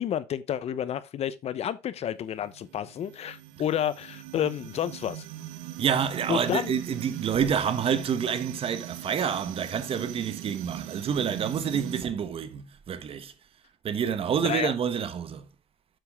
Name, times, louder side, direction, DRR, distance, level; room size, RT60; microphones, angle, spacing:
voice 1, 0.0-5.2 6.3-6.7 14.4-14.7, left 10 dB, 55° left, 0.9 m, -30 dB
sound 1, 2.2-12.0, right 14 dB, 85° right, 1.0 m, -41 dB
voice 2, 5.8-13.3 13.8-15.5, right 7 dB, 45° right, 1.2 m, -28 dB
7.8 x 6.9 x 3.6 m
supercardioid pair, 85°, 13 cm